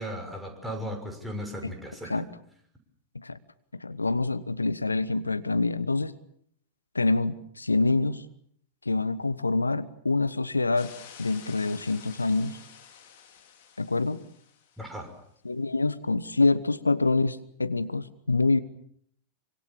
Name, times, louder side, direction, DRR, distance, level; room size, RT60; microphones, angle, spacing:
voice 1, 0.0-2.2 14.8-15.1, equal, 5° right, 3 dB, 6.1 m, -36 dB
voice 2, 3.7-6.1 6.9-8.2 8.8-10.9 11.2-12.6 13.8-14.2 15.4-18.6, left 3 dB, 80° left, 14 dB, 1.1 m, -26 dB
sound 1, 10.8-15.0, left 8 dB, 55° left, 4.7 m, -50 dB
25.5 x 25.0 x 7.1 m, 0.67 s
figure-of-eight pair, 90°, 0 cm